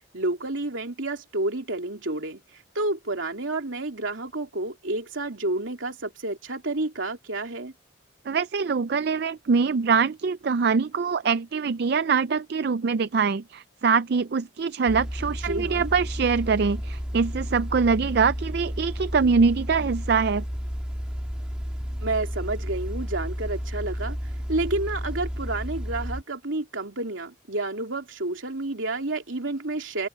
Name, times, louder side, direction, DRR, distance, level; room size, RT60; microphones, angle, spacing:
voice 1, 0.1-7.7 15.4-15.9 22.0-24.2 24.5-30.1, right 2 dB, 85° right, 3.1 m, -30 dB
voice 2, 8.3-20.4, right 5 dB, 55° right, 0.4 m, -23 dB
sound 1, 14.9-26.2, equal, 5° right, 2.8 m, -32 dB
open air
head